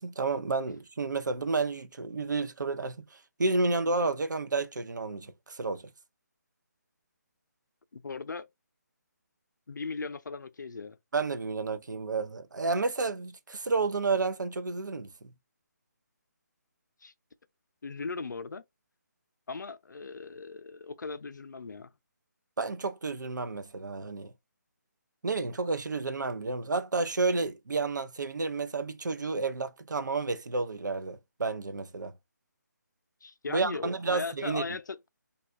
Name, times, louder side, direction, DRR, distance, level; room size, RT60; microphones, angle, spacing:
voice 1, 0.0-3.0 3.4-5.8 11.1-15.1 22.6-24.3 25.2-32.1 33.5-34.6, right 3 dB, 85° right, 0.6 m, -31 dB
voice 2, 7.9-8.5 9.7-11.0 17.0-17.1 17.8-18.6 19.5-21.9 33.2-35.0, left 4 dB, 85° left, 0.4 m, -38 dB
2.7 x 2.4 x 3.1 m
figure-of-eight pair, 155°, 10 cm